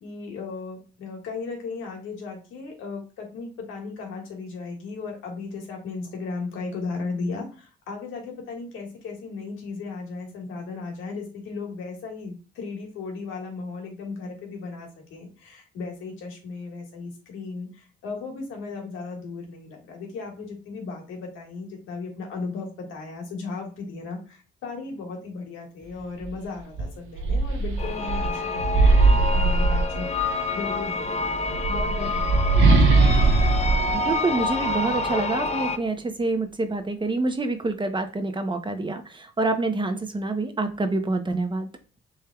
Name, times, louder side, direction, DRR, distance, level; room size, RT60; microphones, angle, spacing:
voice 1, 0.0-33.0, left 4 dB, 85° left, 1 dB, 1.7 m, -36 dB
sound 1, 26.2-26.4 26.8-30.4 31.3-35.0, right 3 dB, 90° right, 1.0 m, -21 dB
sound 2, 27.8-35.8, left 3 dB, 35° left, 0.5 m, -28 dB
voice 2, 33.9-41.7, right 2 dB, 25° right, 7 dB, 0.8 m, -27 dB
6.6 x 3.4 x 2.3 m, 0.36 s
cardioid pair, 90°, 20 cm